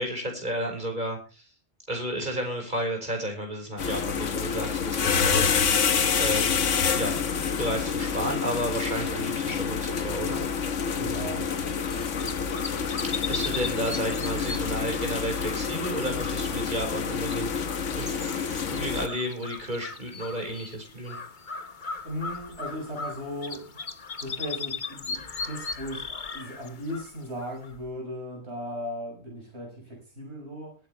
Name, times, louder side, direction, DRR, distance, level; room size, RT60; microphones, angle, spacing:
voice 1, 0.0-1.5 1.9-5.9 6.2-6.6 7.0-7.2 7.6-10.4 13.0-21.2, right 1 dB, 35° right, 2 dB, 5.5 m, -32 dB
sound 1, 3.8-19.1, left 6 dB, 70° left, 1.5 m, -28 dB
voice 2, 11.0-11.5 22.0-23.8 24.2-30.8, equal, 55° right, 0 dB, 6.3 m, -37 dB
sound 2, 11.8-27.9, left 4 dB, 40° left, 1.2 m, -38 dB
21.5 x 9.7 x 3.4 m, 0.32 s
omnidirectional pair, 1.3 m